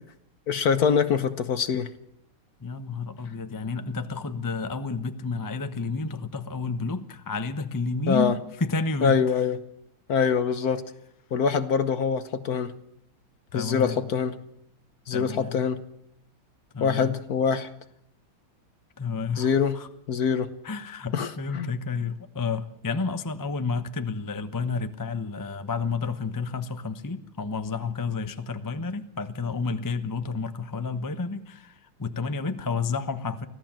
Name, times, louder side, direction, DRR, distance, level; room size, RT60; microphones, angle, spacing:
voice 1, 0.5-1.9 8.1-8.3 9.0-9.6 10.1-10.8 11.3-12.7 13.5-14.4 15.1-15.8 16.8-17.7 19.4-19.8 20.1-20.5 21.1-21.7, left 6 dB, 55° left, 11 dB, 1.3 m, -24 dB
voice 2, 2.6-9.2 13.5-14.1 15.1-15.6 16.7-17.1 19.0-19.9 20.6-33.5, left 4 dB, 20° left, 8 dB, 0.5 m, -31 dB
24.5 x 16.0 x 7.5 m, 0.79 s
omnidirectional pair, 2.2 m